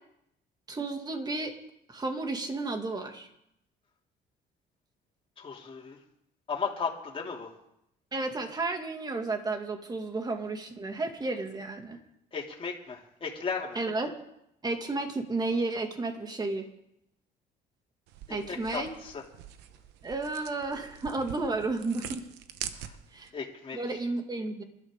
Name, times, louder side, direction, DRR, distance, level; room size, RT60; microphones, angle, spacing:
voice 1, 0.7-1.5 1.9-3.3 8.1-12.0 13.7-14.1 14.6-16.7 18.3-18.9 20.0-22.2 23.1-23.3 23.7-24.6, right 3 dB, 25° right, 4 dB, 2.3 m, -32 dB
voice 2, 5.4-6.0 6.5-7.5 12.3-13.8 18.3-19.2 22.7-22.9 23.3-24.0, left 5 dB, 30° left, -1 dB, 2.8 m, -36 dB
sound 1, 18.1-23.3, right 10 dB, 90° right, 1.1 m, -44 dB
26.0 x 12.5 x 3.8 m, 0.79 s
cardioid pair, 110°, 17 cm